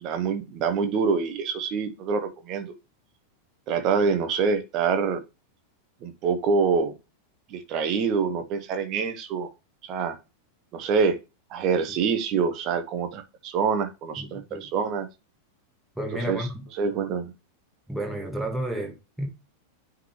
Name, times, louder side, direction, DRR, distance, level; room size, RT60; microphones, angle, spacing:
voice 1, 0.0-2.7 3.7-5.2 6.0-6.9 7.5-9.5 9.8-10.2 10.7-11.2 11.5-15.1 16.3-16.5 16.8-17.3, right 5 dB, 35° right, 1.0 m, -26 dB
voice 2, 14.2-14.7 16.0-16.7 17.9-19.3, right 1 dB, 5° right, 1.8 m, -31 dB
9.3 x 3.8 x 3.1 m
figure-of-eight pair, 90°, 0 cm